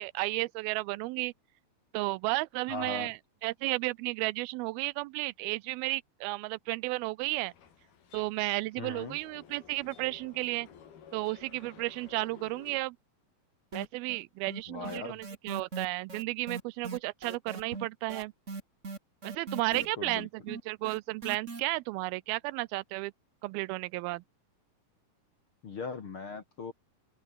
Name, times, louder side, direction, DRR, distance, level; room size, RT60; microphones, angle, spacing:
voice 1, 0.0-1.3 1.9-3.2 3.4-7.5 8.1-10.7 11.1-13.0 13.7-18.3 19.2-23.1 23.4-24.2, right 21 dB, 85° right, 2.4 m, -33 dB
voice 2, 2.7-3.1 8.8-9.2 14.7-15.2 19.7-20.3 25.6-26.7, left 4 dB, 40° left, 2.4 m, -39 dB
sound 1, 7.2-12.8, left 8 dB, 80° left, 5.0 m, -54 dB
sound 2, 13.7-14.2 14.5-21.6, right 4 dB, 25° right, 2.2 m, -40 dB
open air
omnidirectional pair, 4.3 m